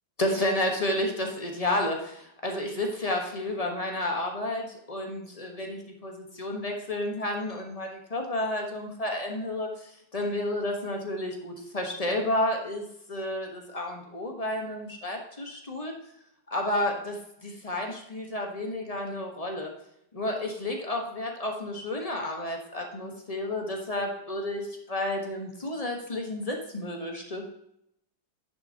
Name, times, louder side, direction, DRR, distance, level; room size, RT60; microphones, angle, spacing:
voice 1, 0.2-15.9 16.5-19.7 20.1-27.5, left 1 dB, 25° left, 2 dB, 0.9 m, -31 dB
9.8 x 6.8 x 2.8 m, 0.77 s
omnidirectional pair, 2.2 m